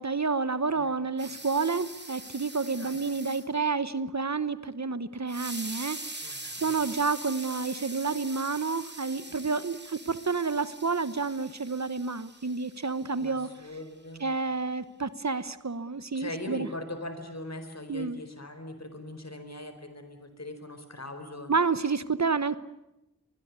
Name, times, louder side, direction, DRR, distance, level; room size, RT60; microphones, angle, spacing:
voice 1, 0.0-6.2 6.6-13.5 14.2-16.7 17.9-18.2 21.5-22.6, right 4 dB, 55° right, 14 dB, 1.1 m, -29 dB
sound 1, 1.2-3.5 5.3-13.6, right 2 dB, 30° right, 2.6 m, -43 dB
voice 2, 6.2-6.8 13.1-14.3 16.1-21.5, left 1 dB, 50° left, 9 dB, 4.5 m, -40 dB
24.0 x 21.5 x 9.6 m, 0.92 s
wide cardioid pair, 55°, 33 cm